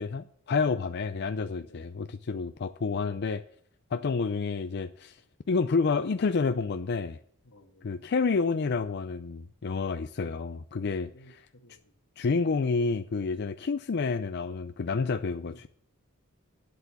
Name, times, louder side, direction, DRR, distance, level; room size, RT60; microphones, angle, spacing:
voice 1, 0.0-3.4 3.9-5.2 5.5-7.2 7.8-11.5 12.2-15.7, left 4 dB, 50° left, 0.5 m, -29 dB
voice 2, 1.6-1.9 7.4-8.1 11.1-11.9 15.3-15.6, left 1 dB, 90° left, 1.7 m, -57 dB
10.5 x 8.2 x 7.0 m
head